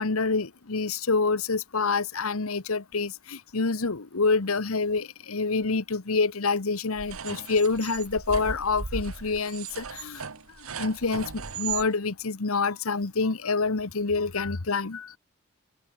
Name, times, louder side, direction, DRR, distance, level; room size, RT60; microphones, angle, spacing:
voice 1, 0.0-10.3 10.8-15.1, left 4 dB, 85° left, 1.2 m, -27 dB
sound 1, 7.0-11.9, right 6 dB, 80° right, 1.4 m, -37 dB
head